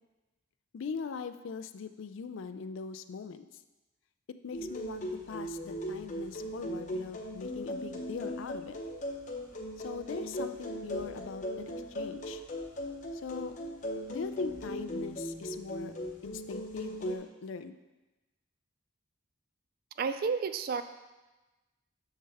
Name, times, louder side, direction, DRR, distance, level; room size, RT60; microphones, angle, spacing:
voice 1, 0.7-3.6 4.3-8.8 9.8-12.4 13.1-13.6 14.1-16.0 16.2-17.7, left 5 dB, 65° left, 11 dB, 0.4 m, -41 dB
sound 1, 4.5-17.2, equal, 35° left, 0.8 m, -38 dB
voice 2, 20.0-20.8, right 5 dB, 45° right, 10 dB, 0.3 m, -31 dB
6.6 x 6.6 x 3.4 m, 1.1 s
head